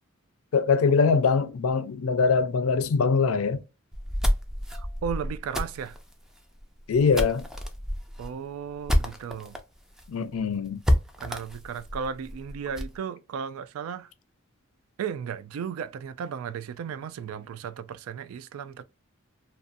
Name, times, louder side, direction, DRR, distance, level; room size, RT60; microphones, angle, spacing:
voice 1, 0.5-3.6 6.9-7.5 10.1-10.8, left 5 dB, 85° left, 0.4 m, -23 dB
sound 1, 3.9-9.6 10.0-10.1 10.3-10.4 10.8-13.0, equal, 5° right, 0.3 m, -28 dB
voice 2, 4.8-6.0 8.2-9.6 11.2-14.1 15.0-18.8, right 7 dB, 80° right, 0.3 m, -35 dB
2.5 x 2.3 x 2.5 m
head